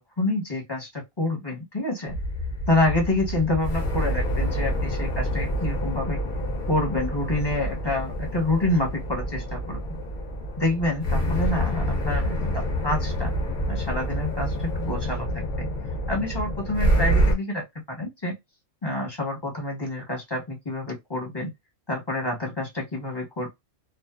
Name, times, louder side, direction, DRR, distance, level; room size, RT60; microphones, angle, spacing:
voice 1, 0.0-2.1 2.7-6.2 6.7-9.8 10.6-13.3 13.7-15.7 16.1-18.3 18.8-21.5 21.9-23.5, left 2 dB, 20° left, 1.0 m, -27 dB
sound 1, 2.1-17.3, equal, 45° left, 0.8 m, -27 dB
2.5 x 2.5 x 2.3 m
omnidirectional pair, 1.4 m